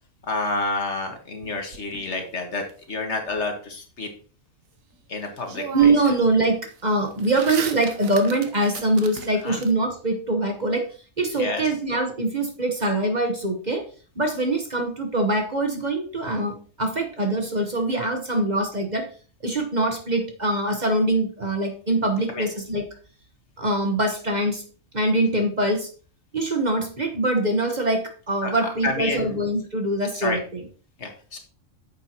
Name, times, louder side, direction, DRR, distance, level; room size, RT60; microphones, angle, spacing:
voice 1, 0.2-4.1 5.1-5.9 9.4-9.6 11.4-11.6 22.3-22.5 28.4-28.5 28.8-29.4 30.1-30.4 31.0-31.4, left 3 dB, 60° left, 4 dB, 1.8 m, -29 dB
sound 1, 1.4-2.7 4.9-5.0 5.4-6.2 6.5-9.7, right 6 dB, 80° right, 1.4 m, -37 dB
voice 2, 5.7-10.9 11.2-13.8 14.2-19.1 19.4-22.9 23.6-24.6 24.9-25.9 26.3-30.6, right 2 dB, 35° right, 4 dB, 1.1 m, -23 dB
9.2 x 7.3 x 2.9 m, 0.41 s
omnidirectional pair, 1.4 m